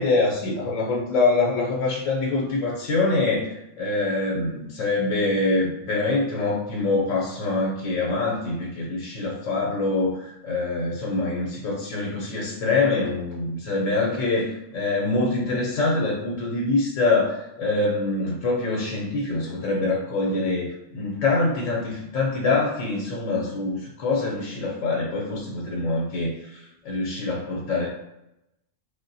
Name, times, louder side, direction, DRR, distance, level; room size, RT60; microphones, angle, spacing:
voice 1, 0.0-27.9, left 3 dB, 85° left, -3 dB, 1.0 m, -25 dB
3.5 x 2.1 x 2.6 m, 0.88 s
omnidirectional pair, 1.3 m